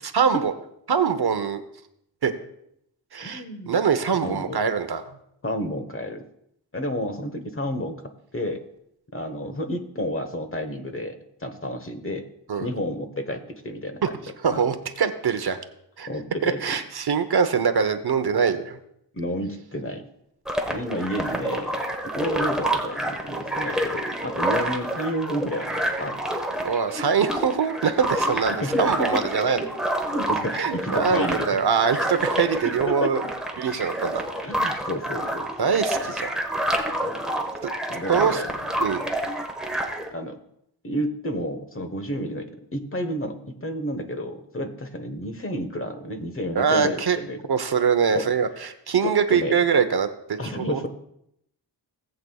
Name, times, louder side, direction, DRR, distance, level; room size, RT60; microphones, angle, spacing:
voice 1, 0.1-0.5 0.9-1.6 2.2-2.3 3.1-5.0 12.5-12.7 14.4-15.6 16.0-16.1 16.4-18.8 26.6-29.6 30.6-33.2 33.6-34.3 35.6-36.3 38.1-38.4 38.8-39.0 46.5-47.2 47.5-50.4 50.7-50.9, right 6 dB, 60° right, 9 dB, 0.9 m, -23 dB
voice 2, 3.2-3.8 4.2-4.6 5.4-6.2 6.7-8.6 9.1-12.2 12.6-14.1 14.5-14.6 16.1-16.6 19.1-20.0 20.7-21.8 22.0-26.2 28.6-29.2 30.1-31.5 32.6-33.1 34.4-35.7 37.0-37.2 37.9-38.5 40.1-40.4 40.8-47.4 48.1-48.3 49.0-49.6 50.4-50.9, equal, 30° left, 6 dB, 1.2 m, -31 dB
sound 1, 20.5-40.1, right 1 dB, ahead, 1.2 m, -28 dB
18.0 x 7.8 x 2.3 m, 0.75 s
wide cardioid pair, 90°, 43 cm